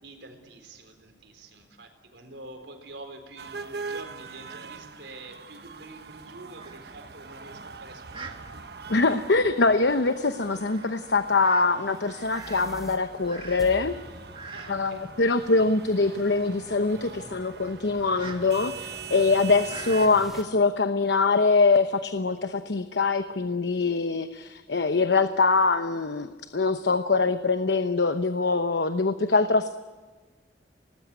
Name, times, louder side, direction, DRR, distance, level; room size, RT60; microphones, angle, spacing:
voice 1, 0.0-8.4 9.1-9.2 14.5-15.1, right 2 dB, 90° right, 5 dB, 4.1 m, -46 dB
sound 1, 3.4-20.1, right 5 dB, 65° right, 1.2 m, -43 dB
Fowl, 6.6-20.3, right 4 dB, 30° right, 2.1 m, -48 dB
voice 2, 8.9-13.9 14.7-29.8, left 3 dB, 80° left, 10 dB, 1.0 m, -23 dB
sound 2, 11.9-20.4, equal, ahead, 2.6 m, -46 dB
25.0 x 19.5 x 9.7 m, 1.4 s
head